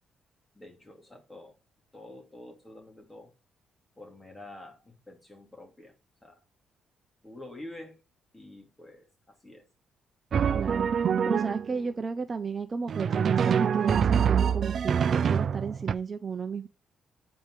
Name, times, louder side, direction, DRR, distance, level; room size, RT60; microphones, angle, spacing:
voice 1, 0.5-1.6 1.9-3.3 4.0-5.9 6.2-6.4 7.2-8.0 8.3-9.7, left 1 dB, 15° left, 3.2 m, -47 dB
Drum, 10.3-11.8 12.9-15.9, right 7 dB, 55° right, 0.5 m, -25 dB
voice 2, 10.5-10.9 11.2-16.7, right 5 dB, 35° right, 0.9 m, -33 dB
8.9 x 5.2 x 5.0 m
cardioid pair, 90°, 0 cm